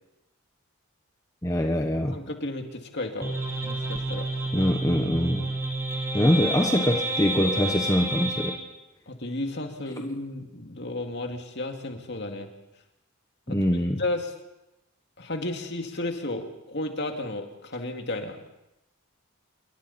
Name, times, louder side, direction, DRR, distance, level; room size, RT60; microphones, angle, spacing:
voice 1, 1.4-2.2 4.5-5.5 6.1-8.6 13.5-14.0, equal, 15° left, 3 dB, 1.1 m, -24 dB
voice 2, 2.1-3.3 3.6-4.3 9.1-12.5 13.5-13.6 14.0-14.3 15.2-18.4, left 2 dB, 55° left, 4 dB, 2.4 m, -33 dB
sound 1, 3.2-8.6, right 2 dB, 10° right, 2.1 m, -30 dB
27.0 x 23.0 x 4.3 m, 0.93 s
head